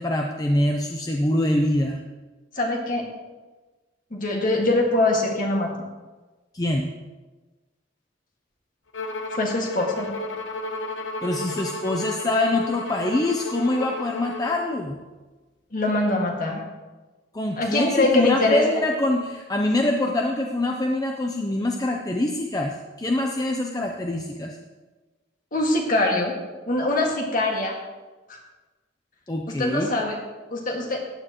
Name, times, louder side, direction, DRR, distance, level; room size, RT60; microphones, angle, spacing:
voice 1, 0.0-2.0 6.5-6.9 11.2-15.0 17.3-24.6 29.3-29.9, left 1 dB, 20° left, 2 dB, 0.6 m, -24 dB
voice 2, 2.6-3.1 4.1-5.7 9.3-10.1 15.7-16.6 17.6-18.7 25.5-26.3 26.7-27.7 28.3-28.4 29.5-30.2 30.5-31.0, left 2 dB, 45° left, 0 dB, 1.9 m, -23 dB
Bowed string instrument, 8.9-14.7, left 2 dB, 75° left, 1.0 m, -33 dB
14.5 x 9.9 x 3.0 m, 1.2 s
head